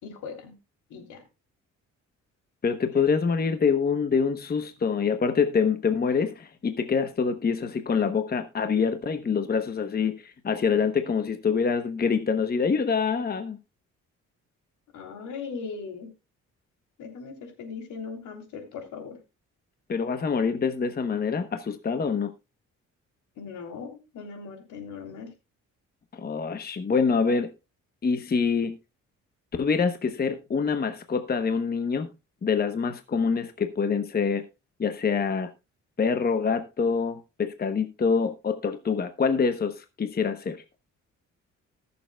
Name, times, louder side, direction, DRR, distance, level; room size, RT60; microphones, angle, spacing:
voice 1, 0.0-0.5 0.9-1.2 14.9-16.1 17.0-19.2 23.4-25.3, left 5 dB, 80° left, 3.3 m, -39 dB
voice 2, 2.6-13.6 19.9-22.3 26.1-27.5 28.0-28.8 29.6-32.1 32.4-34.4 34.8-35.5 36.0-40.6, left 5 dB, 30° left, 1.0 m, -25 dB
19.0 x 6.9 x 2.3 m
cardioid pair, 90°, 30 cm